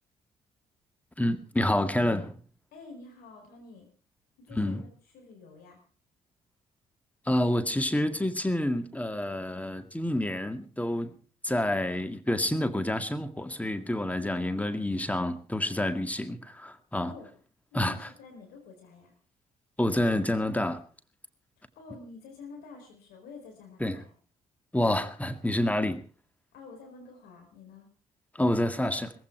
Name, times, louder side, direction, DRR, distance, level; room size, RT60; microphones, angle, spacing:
voice 1, 1.2-2.4 4.5-4.8 7.3-11.2 11.4-17.1 17.7-17.9 19.8-20.8 23.8-24.0 24.7-26.0 28.3-29.1, left 1 dB, 10° left, 9 dB, 2.0 m, -28 dB
voice 2, 2.7-3.9 4.4-5.8 17.0-17.3 17.7-19.1 21.8-24.1 26.5-27.9, left 4 dB, 60° left, 2 dB, 4.4 m, -48 dB
18.0 x 15.5 x 4.7 m, 0.39 s
figure-of-eight pair, 40°, 18 cm